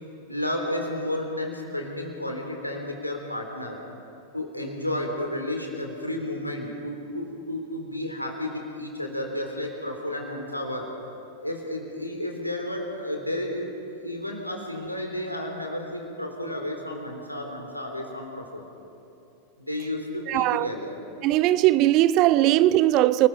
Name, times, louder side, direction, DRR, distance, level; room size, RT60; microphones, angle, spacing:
voice 1, 0.3-3.8 4.3-10.9 11.4-18.7 19.6-21.0, left 1 dB, 90° left, 3.4 m, -32 dB
voice 2, 20.3-20.7 21.2-23.3, right 15 dB, 40° right, 0.6 m, -19 dB
28.5 x 20.0 x 5.4 m
figure-of-eight pair, 90°, 0 cm